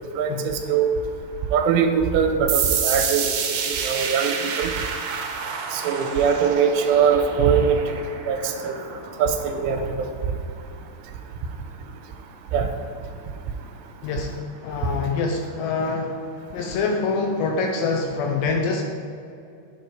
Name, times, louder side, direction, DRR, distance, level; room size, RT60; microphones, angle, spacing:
voice 1, 0.2-0.9 1.5-4.7 5.7-7.8 8.3-8.7 9.2-10.1 12.5-12.7, right 7 dB, 90° right, 4 dB, 3.3 m, -22 dB
sound 1, 2.5-9.9, right 7 dB, 75° right, 2.4 m, -29 dB
voice 2, 14.0-16.2 16.5-18.8, left 4 dB, 80° left, 2 dB, 2.6 m, -25 dB
9.2 x 7.4 x 4.8 m, 2.5 s
omnidirectional pair, 5.6 m